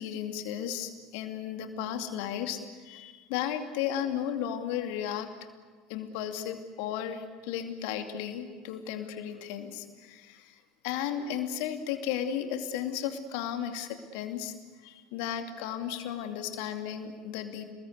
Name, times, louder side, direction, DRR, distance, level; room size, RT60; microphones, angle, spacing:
voice 1, 0.0-5.3 5.9-10.6 10.8-14.5 14.8-17.6, left 9 dB, 60° left, 6 dB, 2.6 m, -34 dB
29.5 x 21.0 x 8.2 m, 1.5 s
figure-of-eight pair, 65°, 0 cm